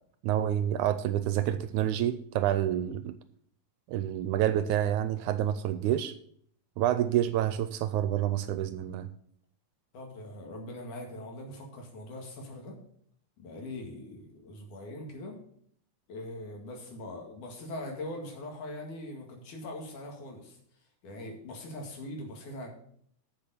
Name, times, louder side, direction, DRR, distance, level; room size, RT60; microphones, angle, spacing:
voice 1, 0.2-3.2 3.9-6.1 6.8-9.1, right 11 dB, 80° right, 12 dB, 1.9 m, -28 dB
voice 2, 9.9-12.8 13.4-15.4 16.1-20.6 21.0-22.7, left 1 dB, 70° left, 2 dB, 3.5 m, -41 dB
7.8 x 7.2 x 6.8 m, 0.63 s
omnidirectional pair, 3.7 m